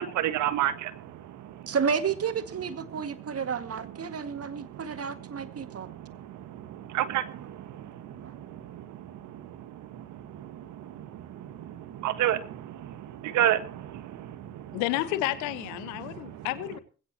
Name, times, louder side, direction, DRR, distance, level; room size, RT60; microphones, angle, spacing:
voice 1, 0.0-1.6 2.9-3.0 4.1-14.8 16.0-16.5, right 11 dB, 80° right, 1.6 m, -33 dB
voice 2, 1.7-5.9 7.4-7.5 8.2-8.3, right 6 dB, 55° right, 2.1 m, -31 dB
voice 3, 14.7-16.8, left 16 dB, 90° left, 1.3 m, -31 dB
20.0 x 17.0 x 2.9 m
hypercardioid pair, 45°, 29 cm